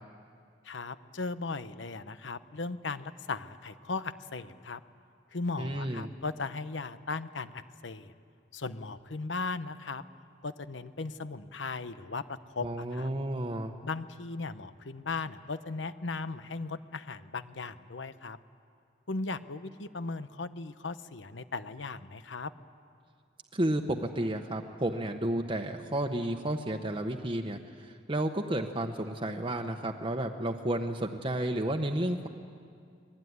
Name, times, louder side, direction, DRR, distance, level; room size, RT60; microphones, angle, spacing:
voice 1, 0.6-4.8 5.3-8.1 8.5-10.0 10.4-13.1 13.8-18.4 19.1-22.5, left 3 dB, 90° left, 12 dB, 1.0 m, -37 dB
voice 2, 5.6-6.1 12.6-13.7 23.5-32.3, right 1 dB, 30° right, 3 dB, 1.0 m, -32 dB
25.0 x 20.0 x 9.6 m, 2.3 s
head